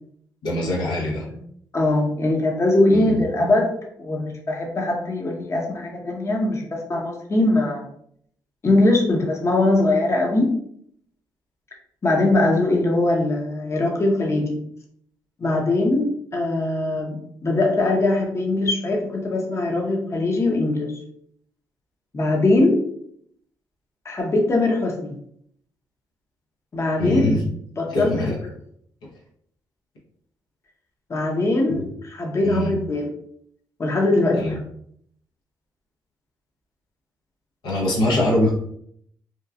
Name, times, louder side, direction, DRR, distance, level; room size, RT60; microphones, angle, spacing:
voice 1, 0.4-1.2 2.9-3.1 27.0-27.4 27.9-28.3 31.7-31.8 32.4-32.8 34.4-34.5 37.6-38.5, left 1 dB, 85° left, -3 dB, 0.8 m, -23 dB
voice 2, 1.7-7.8 8.6-10.5 12.0-14.6 15.4-21.0 22.1-22.8 24.0-25.1 26.7-27.4 27.8-28.3 31.1-33.1 33.8-34.6, left 2 dB, 40° left, 0 dB, 0.7 m, -21 dB
2.9 x 2.3 x 2.3 m, 0.67 s
supercardioid pair, 60°, 7 cm